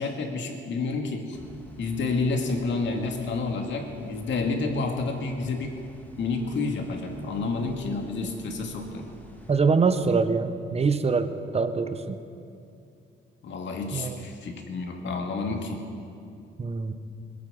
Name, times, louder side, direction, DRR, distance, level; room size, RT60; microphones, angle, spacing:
voice 1, 0.0-1.4 1.8-5.8 6.2-9.1 13.4-15.9, left 3 dB, 65° left, 3 dB, 2.2 m, -29 dB
sound 1, 1.3-9.6, equal, 10° left, 2.2 m, -49 dB
voice 2, 9.5-12.2 13.9-14.2 16.6-16.9, right 4 dB, 30° right, 10 dB, 1.0 m, -24 dB
21.0 x 9.1 x 6.9 m, 2.6 s
cardioid pair, 90°, 20 cm